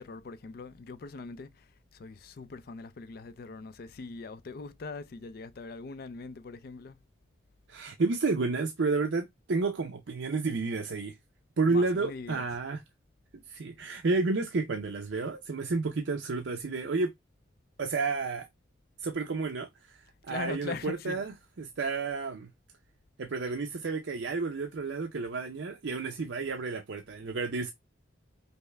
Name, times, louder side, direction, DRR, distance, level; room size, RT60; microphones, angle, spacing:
voice 1, 0.0-7.0 11.6-12.5 20.3-21.2, left 4 dB, 50° left, 0.4 m, -41 dB
voice 2, 7.7-11.2 11.6-12.8 13.5-17.1 17.8-18.5 19.0-22.5 23.2-27.7, right 3 dB, 70° right, 0.5 m, -31 dB
5.4 x 2.0 x 3.3 m
head